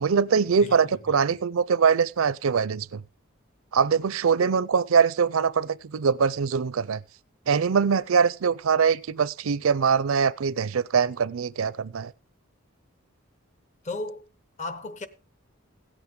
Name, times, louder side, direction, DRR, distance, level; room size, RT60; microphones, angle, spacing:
voice 1, 0.0-3.0 3.7-7.0 7.5-12.1, right 6 dB, 80° right, 0.5 m, -23 dB
voice 2, 0.6-1.4 13.8-14.3 14.6-15.1, left 2 dB, 35° left, 0.9 m, -36 dB
16.5 x 8.3 x 3.7 m
head